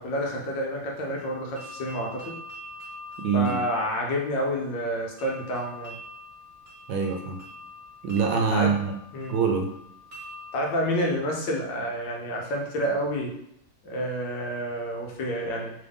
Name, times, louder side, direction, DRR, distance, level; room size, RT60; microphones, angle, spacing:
voice 1, 0.0-2.4 3.3-5.9 8.5-8.8 9.1-9.4 10.5-13.3 13.8-15.7, equal, 70° left, -1 dB, 1.3 m, -29 dB
sound 1, 1.2-12.0, left 1 dB, 40° right, 1.5 m, -45 dB
voice 2, 3.2-3.6 6.9-7.4 8.0-8.9 9.3-9.7, right 5 dB, 75° right, 3 dB, 1.3 m, -24 dB
3.5 x 2.5 x 3.4 m, 0.75 s
omnidirectional pair, 2.2 m